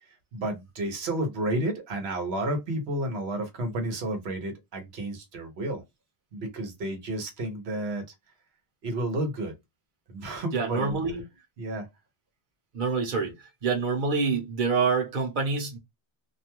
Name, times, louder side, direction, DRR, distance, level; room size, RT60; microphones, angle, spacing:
voice 1, 0.3-5.8 6.3-8.0 8.8-9.5 10.1-11.0 11.6-11.9, right 1 dB, 90° right, 1.1 m, -31 dB
voice 2, 10.5-11.2 12.7-13.3 13.6-15.8, right 4 dB, 55° right, 1.0 m, -26 dB
2.5 x 2.2 x 2.9 m
omnidirectional pair, 1.0 m